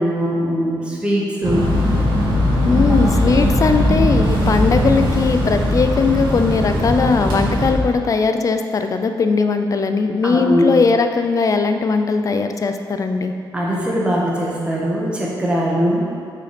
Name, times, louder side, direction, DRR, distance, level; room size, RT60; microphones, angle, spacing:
voice 1, 0.0-1.7 2.7-2.8 10.2-10.7 13.5-16.1, equal, 10° right, -4 dB, 1.6 m, -21 dB
sound 1, 1.4-7.7, left 1 dB, 70° right, 2.3 m, -18 dB
voice 2, 2.6-13.3, left 4 dB, 40° left, 7 dB, 0.5 m, -19 dB
8.0 x 5.5 x 5.2 m, 2.2 s
cardioid pair, 125°, 9 cm